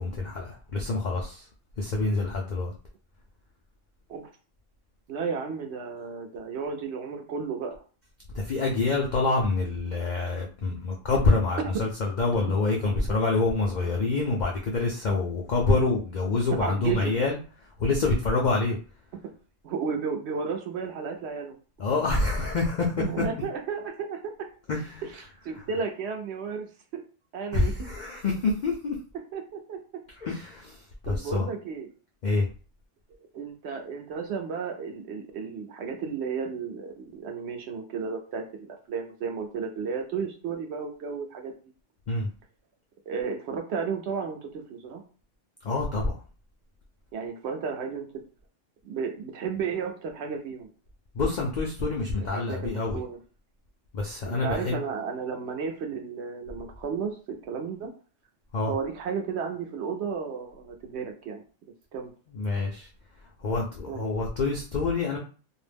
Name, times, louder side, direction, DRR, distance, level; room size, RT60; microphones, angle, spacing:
voice 1, 0.0-1.5 1.8-2.7 8.3-18.8 21.8-23.2 24.7-25.1 27.5-28.9 30.2-31.5 32.2-32.5 42.1-42.3 45.6-46.2 51.1-53.0 53.9-54.8 58.5-58.7 62.3-62.9 63.4-65.2, left 3 dB, 65° left, -1 dB, 0.4 m, -26 dB
voice 2, 5.1-7.8 16.6-17.1 19.2-19.3 19.6-21.6 23.0-24.5 25.1-27.0 27.3-27.7 29.3-29.8 31.0-31.9 33.3-41.5 43.1-45.0 47.1-48.1 48.8-50.7 52.2-53.2 54.2-57.9 58.7-61.4 61.9-62.1 63.9-64.0, right 6 dB, 65° right, 3 dB, 0.8 m, -33 dB
2.5 x 2.0 x 3.3 m, 0.37 s
omnidirectional pair, 1.3 m